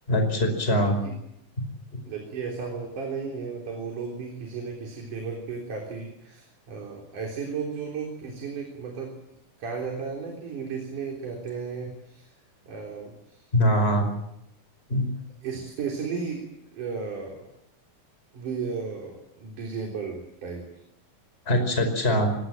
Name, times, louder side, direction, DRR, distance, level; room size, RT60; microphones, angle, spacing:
voice 1, 0.1-1.0 13.5-14.0 14.9-15.0 21.5-22.4, equal, 15° left, 5 dB, 5.2 m, -22 dB
voice 2, 0.7-1.2 2.0-9.2 9.6-12.3 12.7-13.5 15.4-16.5 16.7-17.5 18.3-20.7, right 5 dB, 75° right, 1 dB, 5.2 m, -34 dB
24.5 x 20.5 x 7.8 m, 0.80 s
omnidirectional pair, 3.6 m